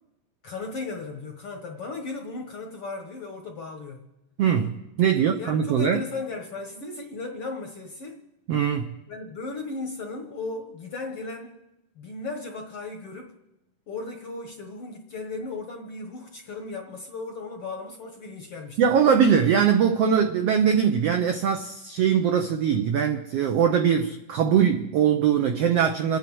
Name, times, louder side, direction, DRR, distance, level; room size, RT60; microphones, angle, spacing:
voice 1, 0.4-4.0 5.1-8.2 9.1-11.6 12.0-13.3 13.9-18.8, left 3 dB, 60° left, 4 dB, 1.5 m, -36 dB
voice 2, 4.4-6.0 8.5-8.9 18.8-26.2, right 8 dB, 80° right, 5 dB, 1.4 m, -21 dB
28.0 x 9.5 x 4.7 m, 0.91 s
omnidirectional pair, 3.8 m